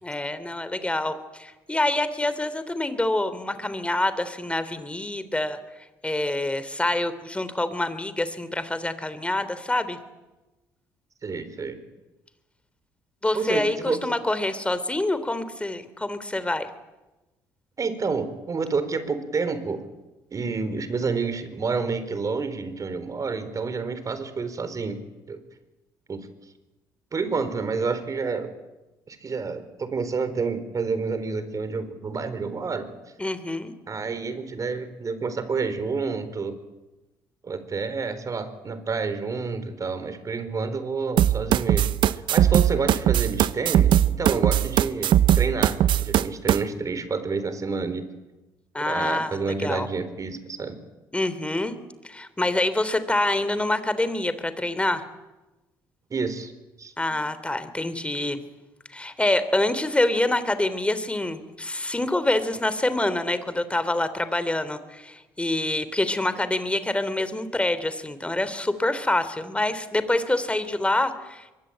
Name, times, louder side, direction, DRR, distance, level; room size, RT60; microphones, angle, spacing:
voice 1, 0.0-5.6 6.0-10.0 13.2-16.7 33.2-33.7 48.7-49.9 51.1-51.8 52.0-55.0 57.0-58.4 58.9-71.5, left 2 dB, 15° left, 13 dB, 3.4 m, -26 dB
voice 2, 11.2-11.8 13.3-14.1 17.8-19.8 20.3-25.0 25.3-25.4 26.1-26.3 27.1-28.5 29.1-32.9 33.9-36.6 37.4-48.1 48.8-50.8 56.1-56.5 56.8-56.9, right 4 dB, 40° right, 11 dB, 4.2 m, -29 dB
sound 1, 41.2-46.6, right 11 dB, 70° right, 0.9 m, -19 dB
23.5 x 23.0 x 8.9 m, 1.1 s
supercardioid pair, 65°, 9 cm